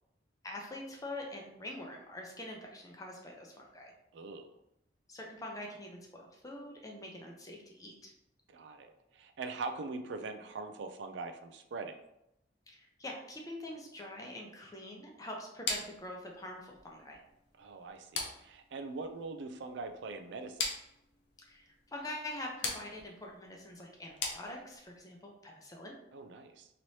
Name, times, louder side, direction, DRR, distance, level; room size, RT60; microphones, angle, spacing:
voice 1, 0.4-3.9 5.1-8.1 12.7-17.2 21.4-26.0, left 1 dB, 20° left, 0 dB, 0.6 m, -45 dB
voice 2, 4.1-4.5 8.5-12.0 17.6-20.7 26.1-26.7, right 3 dB, 80° right, 7 dB, 0.4 m, -42 dB
sound 1, 15.7-25.0, left 4 dB, 75° left, 0.6 m, -42 dB
3.0 x 3.0 x 2.7 m, 0.83 s
head